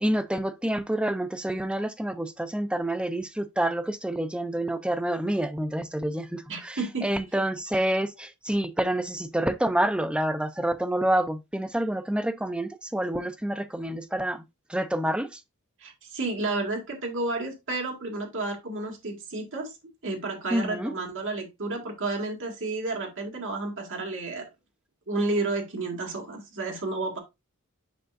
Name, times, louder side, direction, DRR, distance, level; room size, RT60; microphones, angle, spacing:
voice 1, 0.0-14.4 14.7-15.4 20.5-20.9, right 1 dB, 5° right, 0.5 m, -28 dB
voice 2, 6.5-7.1 15.8-19.7 20.0-24.5 25.1-27.2, right 2 dB, 60° right, 2.1 m, -31 dB
7.8 x 5.5 x 2.5 m
head